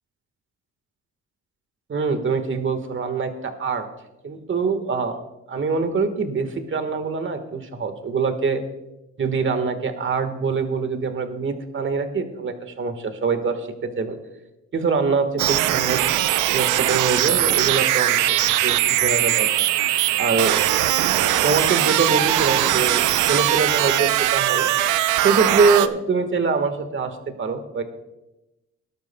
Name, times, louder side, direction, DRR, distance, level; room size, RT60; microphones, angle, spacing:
voice 1, 1.9-3.9 4.2-5.2 5.5-8.6 9.2-14.2 14.7-16.0 16.5-19.5 20.2-20.6 21.1-24.7 25.2-27.8, right 4 dB, 40° right, 8 dB, 1.5 m, -24 dB
sound 1, 15.4-25.9, right 13 dB, 85° right, 0.6 m, -20 dB
18.5 x 12.0 x 2.2 m, 0.96 s
cardioid pair, 90°, 30 cm